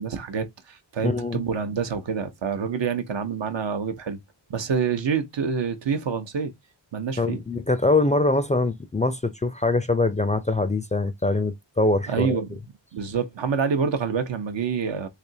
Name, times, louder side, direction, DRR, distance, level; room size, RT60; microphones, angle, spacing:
voice 1, 0.0-4.2 4.5-6.5 6.9-7.4 12.1-12.5 12.9-15.1, right 6 dB, 70° right, 0.8 m, -27 dB
voice 2, 1.0-1.4 7.2-12.4, left 2 dB, 15° left, 0.4 m, -23 dB
3.4 x 2.9 x 2.7 m
wide cardioid pair, 60°, 45 cm